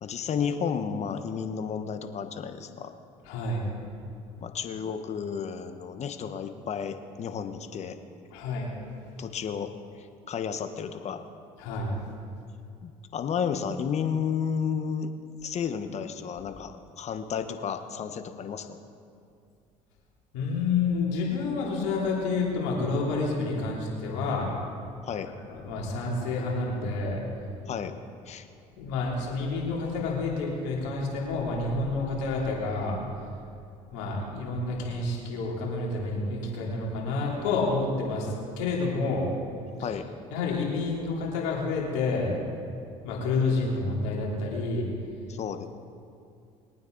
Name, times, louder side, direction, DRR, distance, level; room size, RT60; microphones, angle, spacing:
voice 1, 0.0-2.9 4.4-8.0 9.2-9.7 10.3-11.2 12.8-15.1 15.4-18.7 25.1-25.3 27.7-27.9 28.3-28.5 39.8-40.1 45.3-45.7, left 7 dB, 45° left, 8 dB, 1.1 m, -32 dB
voice 2, 3.3-3.6 8.3-8.7 11.6-11.9 20.3-24.5 25.5-27.2 28.8-33.0 33.9-39.3 39.8-39.9 40.3-42.3 43.0-44.9, left 3 dB, 85° left, -3 dB, 3.2 m, -29 dB
22.0 x 9.3 x 4.0 m, 2.4 s
supercardioid pair, 80°, 15 cm